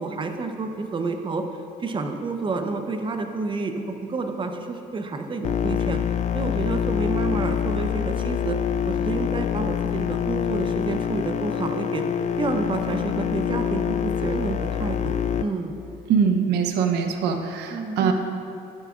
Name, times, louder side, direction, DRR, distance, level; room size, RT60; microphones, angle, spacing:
voice 1, 0.0-1.4 1.8-6.0 6.3-8.6 8.9-12.0 12.4-15.8 17.7-18.0, right 3 dB, 30° right, 6 dB, 0.7 m, -29 dB
sound 1, 5.4-15.4, left 8 dB, 45° left, 0.4 m, -25 dB
voice 2, 16.1-18.1, right 6 dB, 80° right, 4 dB, 0.8 m, -22 dB
12.0 x 9.1 x 2.5 m, 2.7 s
cardioid pair, 110°, 17 cm